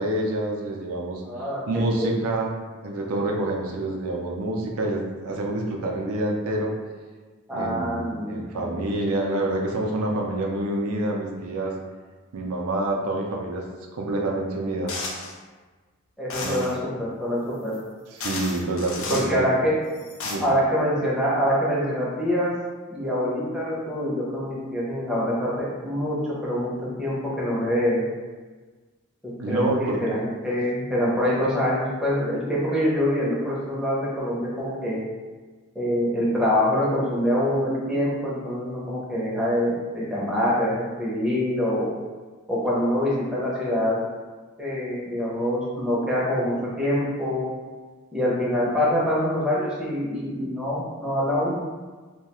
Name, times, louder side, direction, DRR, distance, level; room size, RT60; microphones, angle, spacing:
voice 1, 0.0-1.2 1.7-2.5 2.8-6.7 7.5-11.7 12.3-13.6 13.9-14.9 16.4-16.6 18.1-19.5 20.2-20.5 29.4-30.0, right 2 dB, 85° right, 0 dB, 0.4 m, -27 dB
voice 2, 1.2-2.3 7.5-8.8 16.2-17.8 19.1-19.7 20.4-22.5 22.9-26.7 27.0-28.0 29.2-35.0 35.7-41.9 42.5-44.0 44.6-47.4 48.1-51.6, equal, 5° right, -7 dB, 0.5 m, -25 dB
sound 1, 14.9-15.4 16.3-16.8 17.7-17.8 18.2-19.3 20.0-20.4, left 3 dB, 65° left, 0.4 m, -33 dB
2.3 x 2.1 x 2.9 m, 1.4 s
head